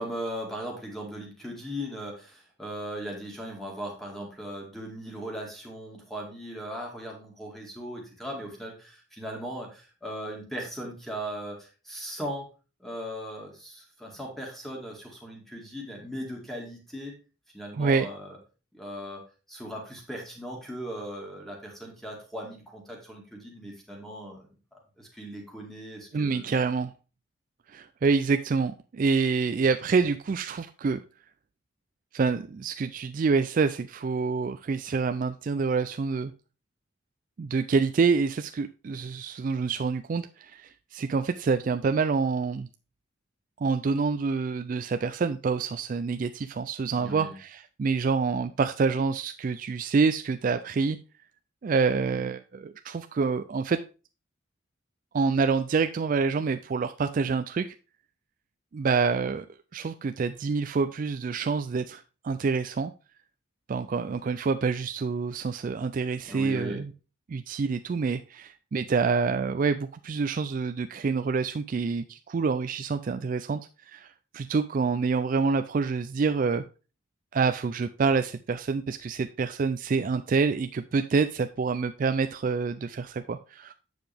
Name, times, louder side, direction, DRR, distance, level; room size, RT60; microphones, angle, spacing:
voice 1, 0.0-12.5 12.8-17.2 17.5-18.4 18.7-19.2 19.5-26.5 46.9-47.4 66.3-66.9, equal, ahead, 0 dB, 2.0 m, -38 dB
voice 2, 17.8-18.1 26.1-26.9 27.7-31.0 32.1-36.3 37.4-42.7 43.6-51.0 51.6-53.8 55.1-57.7 58.7-59.5 59.7-62.9 63.7-66.9 67.3-73.6 73.9-74.1 74.3-76.6 77.3-83.7, right 4 dB, 40° right, 8 dB, 0.3 m, -27 dB
7.9 x 6.7 x 3.4 m, 0.33 s
head